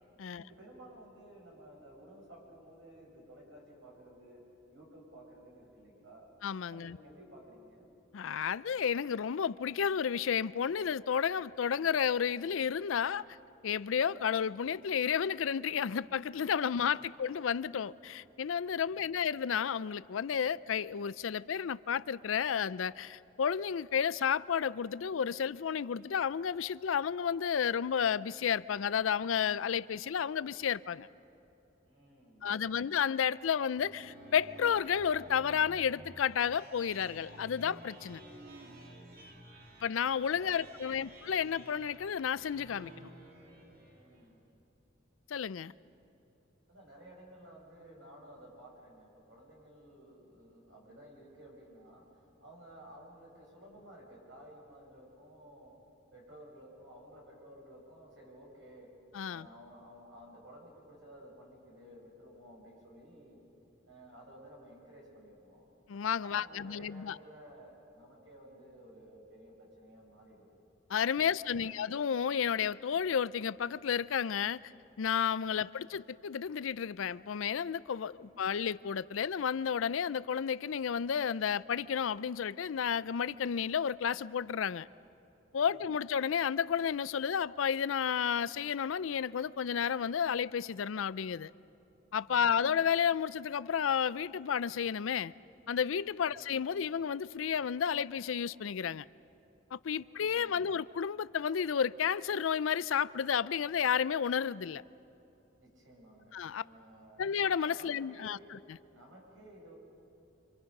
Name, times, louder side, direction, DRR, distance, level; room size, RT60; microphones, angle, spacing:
voice 1, 0.3-4.4 4.7-6.3 6.7-7.9 16.8-16.9 18.8-19.2 31.8-32.9 40.3-41.2 43.9-44.4 46.7-55.8 56.1-58.9 59.3-63.4 63.8-65.7 66.2-70.4 71.1-71.9 78.1-78.4 85.6-86.0 92.2-92.6 96.2-96.5 99.8-100.7 105.6-107.3 107.6-108.5 108.9-109.7, right 1 dB, 70° right, 7.5 m, -55 dB
voice 2, 6.4-7.0 8.1-13.2 13.6-31.1 32.4-38.2 39.8-43.1 45.3-45.7 59.1-59.5 65.9-67.2 70.9-74.7 75.0-84.9 85.5-91.5 92.1-95.3 95.7-99.0 99.7-104.8 106.3-106.6 107.2-108.6, left 7 dB, 85° left, 0.4 m, -32 dB
sound 1, 33.8-44.4, right 1 dB, 50° right, 2.8 m, -53 dB
29.5 x 26.0 x 5.4 m
head